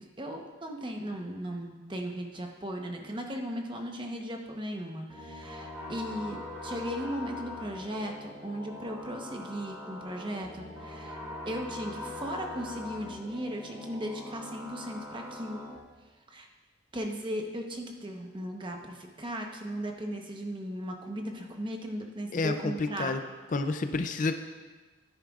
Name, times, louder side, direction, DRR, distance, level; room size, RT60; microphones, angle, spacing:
voice 1, 0.2-11.2 11.5-15.6 16.3-16.5 16.9-23.1, equal, 25° right, 2 dB, 0.9 m, -37 dB
sound 1, 5.1-15.8, left 2 dB, 10° right, 1.7 m, -42 dB
voice 2, 22.3-23.2 23.5-24.3, left 3 dB, 40° left, 8 dB, 0.4 m, -29 dB
12.5 x 10.0 x 2.4 m, 1.3 s
head